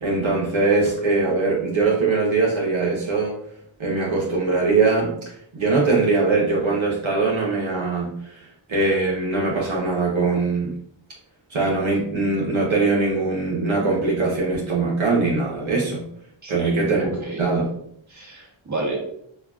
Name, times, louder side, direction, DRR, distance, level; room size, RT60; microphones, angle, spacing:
voice 1, 0.0-3.4 3.8-10.7 11.5-16.1 16.5-17.8, right 3 dB, 75° right, -5 dB, 1.0 m, -22 dB
voice 2, 16.4-16.8 17.2-17.5 18.1-19.0, right 2 dB, 35° right, -4 dB, 1.3 m, -30 dB
5.4 x 2.4 x 2.3 m, 0.69 s
wide cardioid pair, 80°, 48 cm